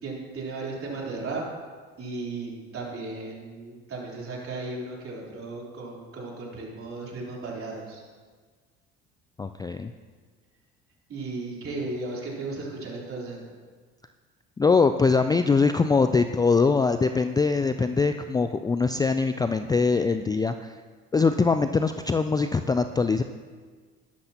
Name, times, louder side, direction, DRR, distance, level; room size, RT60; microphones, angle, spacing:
voice 1, 0.0-1.4 2.0-8.0 11.1-13.4, right 3 dB, 45° right, -3 dB, 3.7 m, -35 dB
voice 2, 9.4-9.9 14.6-20.8 21.1-23.2, left 4 dB, 15° left, 9 dB, 0.3 m, -22 dB
12.0 x 11.5 x 2.9 m, 1.5 s
hypercardioid pair, 70°, 31 cm